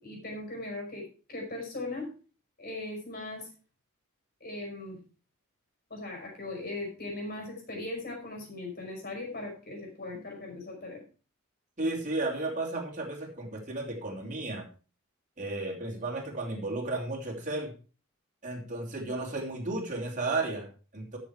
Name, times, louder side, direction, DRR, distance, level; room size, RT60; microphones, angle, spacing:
voice 1, 0.0-1.0 1.3-2.1 2.6-3.5 4.4-5.0 5.9-11.0, left 2 dB, 45° left, 1 dB, 5.3 m, -38 dB
voice 2, 11.8-14.7 15.4-17.7 18.4-21.2, right 2 dB, 35° right, -1 dB, 3.0 m, -33 dB
13.0 x 6.6 x 4.8 m, 0.36 s
head